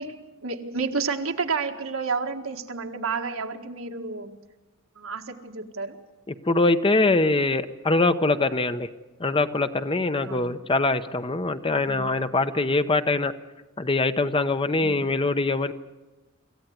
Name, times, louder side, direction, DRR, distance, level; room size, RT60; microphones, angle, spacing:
voice 1, 0.0-4.4 5.0-6.0 10.2-10.6 11.8-12.3 14.8-15.3, right 4 dB, 80° right, 4 dB, 1.8 m, -31 dB
voice 2, 6.5-8.9 9.2-13.3 13.8-15.7, left 2 dB, 25° left, 10 dB, 0.8 m, -23 dB
26.0 x 15.0 x 9.4 m, 1.1 s
head